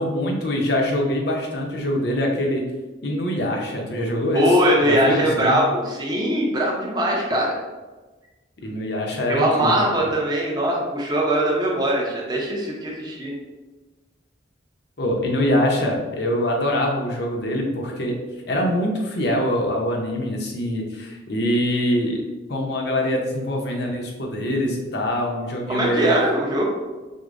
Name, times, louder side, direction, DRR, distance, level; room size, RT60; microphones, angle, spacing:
voice 1, 0.0-2.7 3.0-5.6 7.3-7.4 8.6-10.1 15.0-18.2 18.5-22.2 22.5-26.1, left 1 dB, 60° left, 0 dB, 0.7 m, -24 dB
voice 2, 4.3-7.5 9.3-13.3 25.7-26.7, right 1 dB, 20° right, -3 dB, 0.7 m, -21 dB
6.3 x 2.1 x 2.6 m, 1.2 s
head